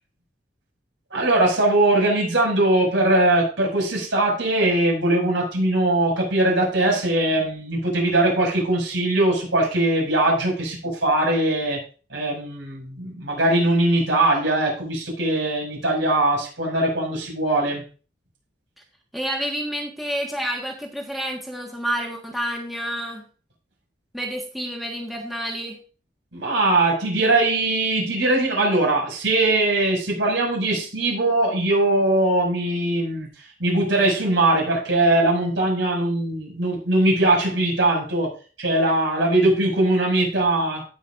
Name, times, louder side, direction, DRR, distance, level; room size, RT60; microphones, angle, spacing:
voice 1, 1.1-11.8 12.1-17.8 26.3-40.8, right 2 dB, 85° right, 6.1 m, -21 dB
voice 2, 19.1-23.2 24.1-25.8, equal, ahead, 1.5 m, -29 dB
17.5 x 6.4 x 2.6 m
head